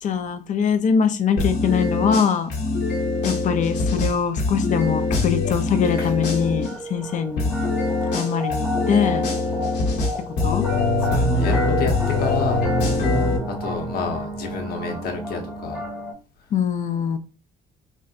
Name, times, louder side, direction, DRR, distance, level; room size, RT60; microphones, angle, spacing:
voice 1, 0.0-2.5 3.2-7.5 8.1-9.3 10.3-10.7 16.5-17.2, left 6 dB, 50° left, 0.5 m, -22 dB
sound 1, 1.4-6.7 7.4-13.4, left 3 dB, 85° left, 1.4 m, -23 dB
sound 2, 6.2-16.1, right 2 dB, 10° right, 1.0 m, -29 dB
voice 2, 11.0-11.9 12.2-12.6 12.9-15.9, left 4 dB, 65° left, 1.0 m, -30 dB
4.3 x 2.1 x 2.4 m
cardioid pair, 110°, 17 cm